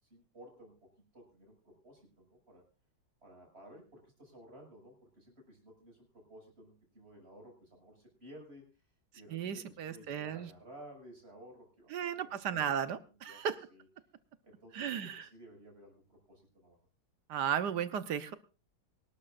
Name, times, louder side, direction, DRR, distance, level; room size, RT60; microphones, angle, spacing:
voice 1, 0.1-2.6 3.2-8.7 9.1-13.0 13.2-13.4 13.7-13.9 14.4-16.8, right 1 dB, 35° right, 1 dB, 6.7 m, -55 dB
voice 2, 9.3-10.5 11.9-13.6 14.7-15.2 17.3-18.3, right 8 dB, 70° right, 12 dB, 1.5 m, -35 dB
24.5 x 12.0 x 2.5 m, 0.32 s
omnidirectional pair, 2.0 m